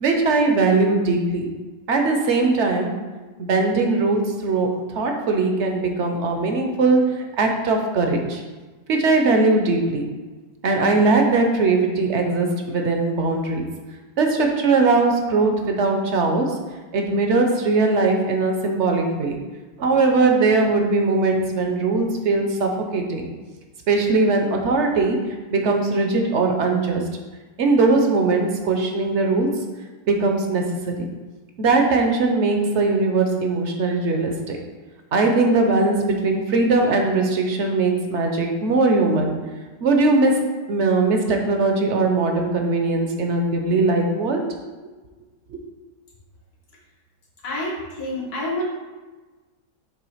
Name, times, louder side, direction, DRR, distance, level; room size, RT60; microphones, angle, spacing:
voice 1, 0.0-1.5 1.9-3.0 3.4-8.4 8.9-10.1 10.6-13.6 14.2-16.6 16.9-19.4 19.8-23.3 23.9-27.0 27.6-29.6 30.1-31.1 31.6-34.6 35.1-39.4 39.8-44.4 45.5-45.6, right 3 dB, 55° right, 3 dB, 0.9 m, -20 dB
voice 2, 47.4-48.6, left 1 dB, 80° left, -5 dB, 2.0 m, -28 dB
6.8 x 3.4 x 4.9 m, 1.3 s
omnidirectional pair, 1.6 m